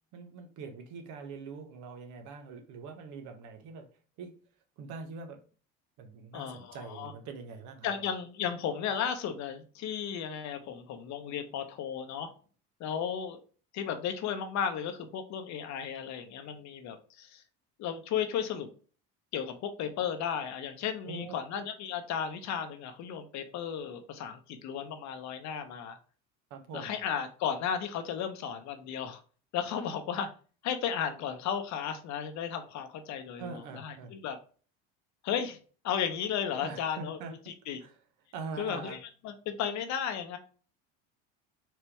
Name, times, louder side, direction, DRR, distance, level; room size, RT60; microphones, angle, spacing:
voice 1, 0.1-3.9 4.2-4.3 4.8-5.4 6.0-7.9 21.1-21.3 26.5-27.0 33.4-34.1 36.6-37.3 37.8-37.9 38.3-39.0, right 4 dB, 65° right, 1.2 m, -43 dB
voice 2, 6.3-7.1 7.8-12.3 12.8-13.4 13.7-17.4 17.8-18.7 19.3-26.0 26.7-29.2 29.5-30.3 30.6-34.4 35.2-35.6 35.8-37.2 37.7-37.8 38.6-40.4, left 8 dB, 60° left, 1.0 m, -34 dB
4.5 x 2.9 x 3.3 m
supercardioid pair, 100°, 32 cm